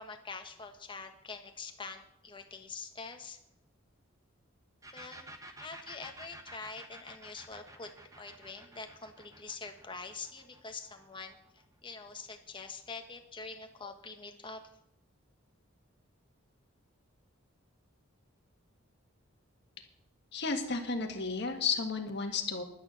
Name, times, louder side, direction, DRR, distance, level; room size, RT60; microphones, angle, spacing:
voice 1, 0.0-3.4 4.9-5.3 5.6-14.6, left 4 dB, 25° left, 5 dB, 1.3 m, -45 dB
sound 1, 4.8-12.3, right 1 dB, 15° right, 1.1 m, -52 dB
voice 2, 20.3-22.6, left 4 dB, 55° left, 4 dB, 1.7 m, -33 dB
11.0 x 9.5 x 6.4 m, 0.78 s
head